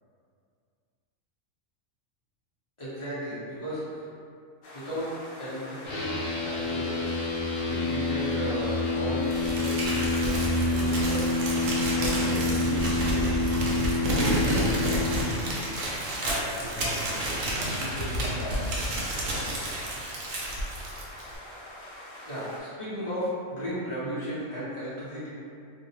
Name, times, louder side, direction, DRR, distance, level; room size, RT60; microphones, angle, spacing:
voice 1, 2.8-4.0 4.7-6.2 6.4-7.1 7.7-11.3 11.9-13.4 14.1-15.0 22.3-25.3, equal, 35° left, -11 dB, 0.5 m, -35 dB
sound 1, 4.6-22.6, left 1 dB, 60° left, 0.8 m, -45 dB
sound 2, 5.9-15.2, left 2 dB, 85° left, 1.0 m, -28 dB
Crumpling crinkling, 9.3-21.4, right 1 dB, 80° right, 1.0 m, -30 dB
voice 2, 16.2-18.7, equal, 60° right, -11 dB, 0.4 m, -37 dB
2.7 x 2.0 x 2.7 m, 2.4 s
omnidirectional pair, 1.3 m